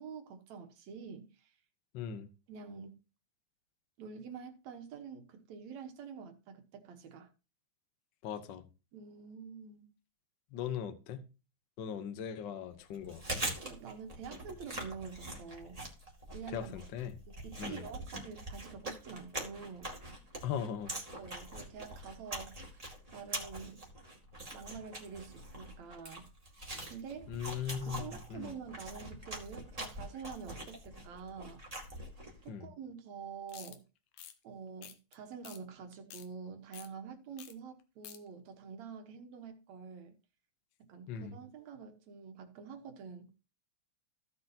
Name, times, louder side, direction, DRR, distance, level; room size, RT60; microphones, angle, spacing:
voice 1, 0.0-1.5 2.5-2.9 4.0-7.3 8.9-9.9 13.6-15.9 16.3-16.7 17.4-19.9 21.2-22.7 23.1-23.8 24.5-26.3 26.9-27.3 27.9-31.6 32.4-33.8 34.4-40.1 40.8-43.3, right 6 dB, 65° right, 2.4 m, -47 dB
voice 2, 1.9-2.3 8.2-8.7 10.5-11.2 11.8-13.4 16.5-17.2 17.6-17.8 20.4-20.9 27.3-28.5 32.5-32.7 41.1-41.4, left 8 dB, 70° left, 1.1 m, -39 dB
Chewing mastication, 12.9-32.4, right 1 dB, 15° right, 2.0 m, -44 dB
sound 1, 33.5-33.8 34.1-34.3 34.8-35.1 35.4-35.6 35.9-36.3 36.7-36.9 37.4-37.5 37.8-38.2, left 10 dB, 85° left, 2.5 m, -49 dB
15.5 x 6.9 x 2.8 m
omnidirectional pair, 3.5 m